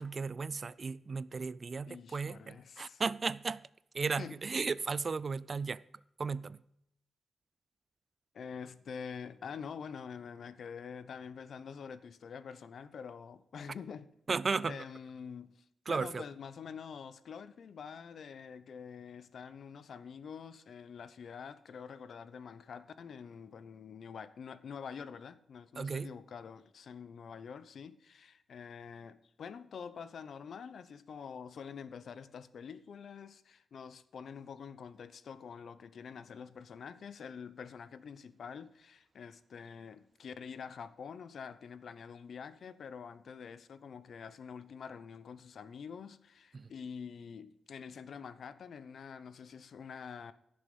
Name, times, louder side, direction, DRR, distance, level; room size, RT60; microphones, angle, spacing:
voice 1, 0.0-3.7 3.9-5.8 6.2-6.6 14.3-14.8 15.9-16.2 25.8-26.1 46.5-46.7, right 4 dB, 35° right, 0.4 m, -35 dB
voice 2, 1.9-3.0 4.2-4.4 8.3-14.1 14.6-50.3, left 6 dB, 55° left, 0.8 m, -46 dB
16.0 x 7.1 x 5.4 m
wide cardioid pair, 160°, 0 cm